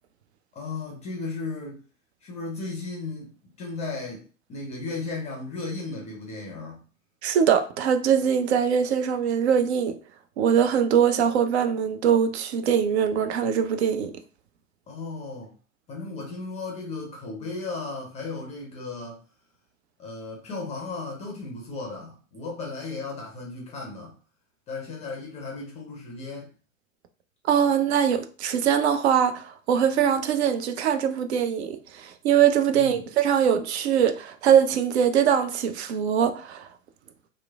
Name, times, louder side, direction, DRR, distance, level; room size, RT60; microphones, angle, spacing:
voice 1, 0.5-1.8 2.2-3.3 3.6-4.2 4.5-6.8 14.9-15.5 15.9-19.2 20.0-24.2 24.7-26.5 32.7-33.0, left 3 dB, 15° left, 0.5 m, -35 dB
voice 2, 7.2-10.0 10.4-14.1 27.5-36.7, right 8 dB, 55° right, 0.5 m, -22 dB
2.9 x 2.0 x 2.3 m
figure-of-eight pair, 90°, 40 cm